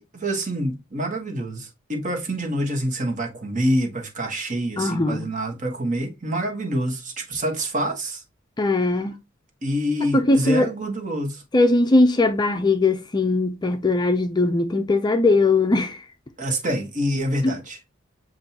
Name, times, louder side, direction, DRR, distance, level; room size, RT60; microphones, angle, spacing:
voice 1, 0.1-8.2 9.6-11.4 16.4-17.8, equal, 40° right, 1.2 m, -26 dB
voice 2, 4.8-5.2 8.6-9.1 10.1-10.7 11.5-16.0 17.4-17.5, left 2 dB, 20° left, 0.4 m, -20 dB
7.4 x 2.6 x 2.7 m
head